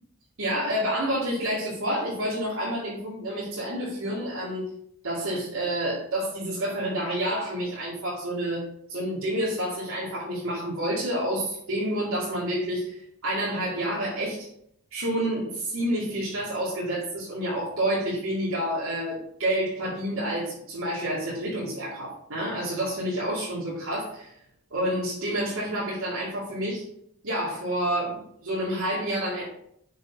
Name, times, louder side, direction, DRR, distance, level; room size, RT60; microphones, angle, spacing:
voice 1, 0.4-4.6 5.0-8.6 8.9-13.0 13.2-14.5 14.9-24.3 24.7-26.8 27.2-29.4, right 1 dB, 85° right, -8 dB, 2.5 m, -29 dB
6.8 x 6.4 x 2.9 m, 0.71 s
head